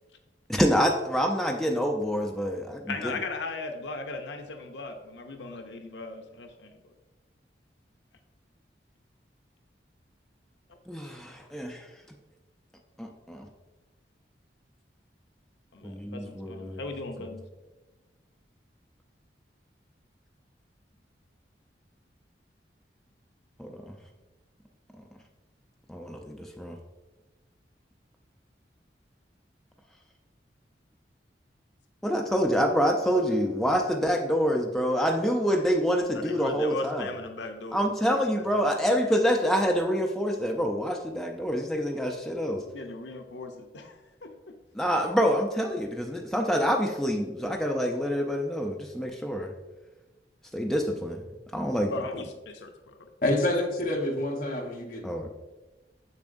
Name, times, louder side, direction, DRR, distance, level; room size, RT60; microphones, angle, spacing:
voice 1, 0.5-2.9 10.9-11.9 13.0-13.5 15.8-16.8 17.2-17.3 23.6-23.9 25.9-26.8 32.0-37.1 37.7-42.6 44.7-49.5 50.5-51.2 51.5-51.9 55.0-55.3, equal, ahead, 1 dB, 0.4 m, -26 dB
voice 2, 2.9-6.9 11.8-11.9 15.7-17.4 36.1-38.6 42.7-44.3 51.9-53.0, left 3 dB, 80° left, 5 dB, 0.7 m, -38 dB
voice 3, 53.2-55.0, left 1 dB, 50° left, 1 dB, 1.1 m, -27 dB
7.0 x 6.9 x 2.6 m, 1.1 s
head